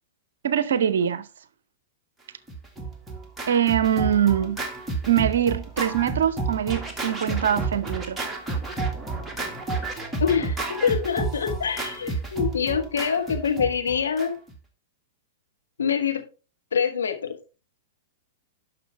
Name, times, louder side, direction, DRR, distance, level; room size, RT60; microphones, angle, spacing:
voice 1, 0.4-1.3 3.5-4.6 5.1-8.3, right 9 dB, 65° right, 0.7 m, -23 dB
Scratching (performance technique), 2.5-14.6, right 3 dB, 5° right, 1.9 m, -31 dB
voice 2, 10.2-14.3 15.8-16.2 16.7-17.4, left 7 dB, 70° left, 1.5 m, -25 dB
10.0 x 6.1 x 3.4 m
figure-of-eight pair, 100°, 0 cm